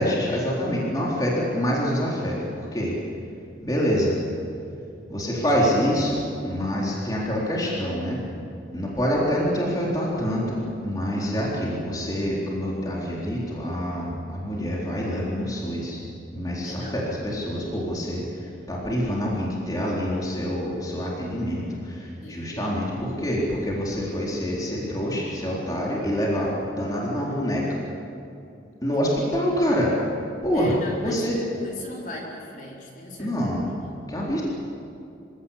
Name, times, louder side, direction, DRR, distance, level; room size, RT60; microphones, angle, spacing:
voice 1, 0.0-2.9 3.6-4.2 5.1-8.2 8.7-16.0 16.3-27.6 28.8-30.0 30.4-30.7 31.0-31.4 33.2-33.7 34.1-34.4, equal, 20° left, -5 dB, 3.9 m, -26 dB
voice 2, 16.6-17.0 22.2-22.6 30.5-34.1, left 1 dB, 45° left, -2 dB, 4.5 m, -39 dB
26.5 x 17.5 x 8.6 m, 2.6 s
head